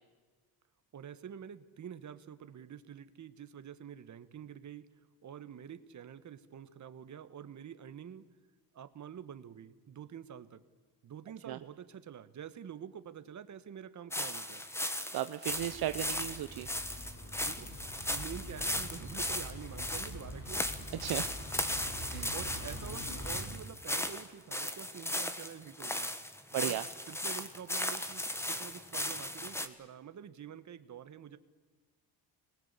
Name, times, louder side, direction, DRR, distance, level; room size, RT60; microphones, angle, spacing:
voice 1, 0.9-4.9 5.2-8.2 8.7-10.6 11.0-14.6 17.4-17.8 18.1-20.9 22.0-26.1 26.5-26.8 27.1-31.4, right 8 dB, 45° right, 12 dB, 1.4 m, -47 dB
sound 1, 14.1-29.7, left 1 dB, 5° left, 1.4 m, -37 dB
voice 2, 15.1-16.7 21.0-21.3 22.1-22.3 26.5-26.8, right 13 dB, 65° right, 10 dB, 0.8 m, -35 dB
sound 2, 15.5-23.5, equal, 50° left, 7.3 m, -45 dB
25.0 x 20.5 x 8.3 m, 1.4 s
cardioid pair, 130°, 40 cm